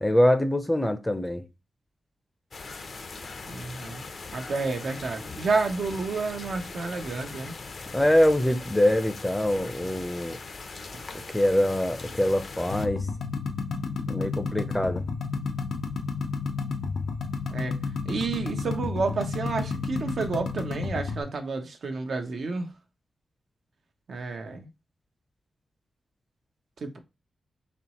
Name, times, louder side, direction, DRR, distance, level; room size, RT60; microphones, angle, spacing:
voice 1, 0.0-1.4 7.9-10.4 11.3-13.1 14.1-15.0 15.3-15.4, left 1 dB, 10° left, 0.6 m, -24 dB
sound 1, 2.5-12.9, left 4 dB, 55° left, 0.6 m, -40 dB
voice 2, 3.5-4.0 4.3-7.5 17.5-17.8 18.0-22.7 24.1-24.7 26.8-27.0, right 4 dB, 70° right, 0.9 m, -30 dB
sound 2, 12.7-21.2, left 4 dB, 90° left, 0.8 m, -31 dB
4.3 x 3.1 x 2.9 m
cardioid pair, 90°, 0 cm